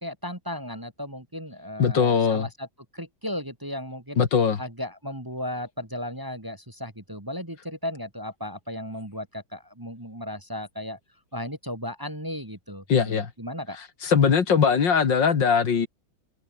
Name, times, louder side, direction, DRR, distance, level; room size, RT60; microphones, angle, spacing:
voice 1, 0.0-2.7 2.9-4.2 4.6-11.0 11.3-13.8, left 1 dB, 10° right, 2.4 m, -35 dB
voice 2, 1.8-2.5 4.2-4.6 12.9-13.3 14.0-15.9, left 6 dB, 65° left, 2.5 m, -20 dB
omnidirectional pair, 2.2 m